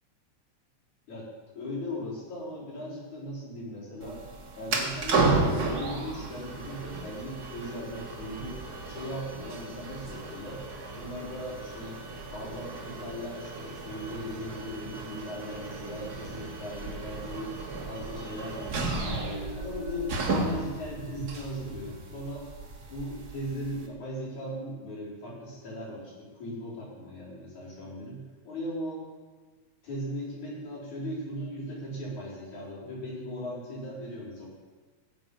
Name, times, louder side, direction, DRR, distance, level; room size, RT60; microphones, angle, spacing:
voice 1, 1.6-4.2 4.6-8.6 8.8-10.6 11.0-12.0 12.3-17.6 17.8-19.2 19.6-22.5 22.9-29.0 29.8-34.5, equal, 75° left, -7 dB, 6.1 m, -38 dB
sound 1, 4.0-23.9, right 3 dB, 40° right, 1.6 m, -34 dB
20.5 x 7.8 x 5.5 m, 1.4 s
omnidirectional pair, 3.4 m